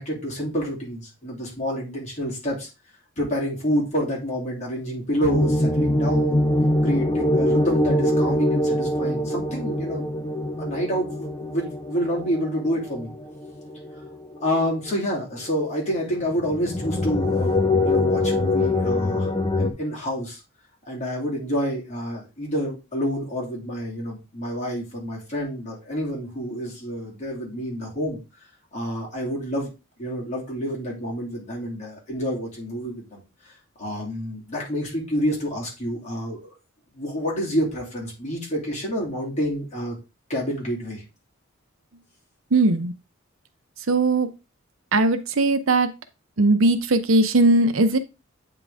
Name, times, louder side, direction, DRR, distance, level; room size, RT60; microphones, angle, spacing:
voice 1, 0.0-2.7 3.2-6.5 6.8-10.0 10.6-13.1 14.4-19.3 19.6-20.4 20.9-28.2 28.7-29.7 30.0-33.2 33.8-36.5 36.9-40.0 40.3-41.0, equal, 35° left, -4 dB, 2.9 m, -28 dB
sound 1, 5.2-14.9 15.4-15.5 16.1-19.7, left 1 dB, 20° left, 0.5 m, -24 dB
voice 2, 42.5-42.9 43.9-44.3 44.9-45.9 46.4-48.0, right 2 dB, 80° right, 10 dB, 0.7 m, -19 dB
8.4 x 3.8 x 3.5 m, 0.28 s
head